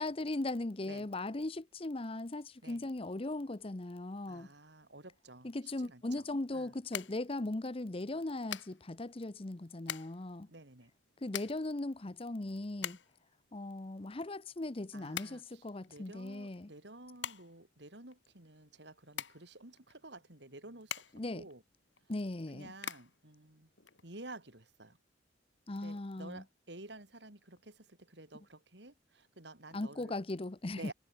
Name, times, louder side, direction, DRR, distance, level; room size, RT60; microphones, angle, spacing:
voice 1, 0.0-4.5 5.4-10.5 11.2-13.0 13.5-16.7 21.1-21.4 22.1-22.7 25.7-26.4 29.7-30.9, left 2 dB, 30° left, 0.8 m, -38 dB
voice 2, 4.3-5.5 5.8-6.3 6.5-6.7 10.5-10.9 14.9-20.9 21.3-21.6 22.5-23.7 24.0-25.0 25.8-30.1 30.8-30.9, right 2 dB, 70° right, 4.3 m, -52 dB
sound 1, 5.7-24.5, left 9 dB, 80° left, 2.6 m, -47 dB
head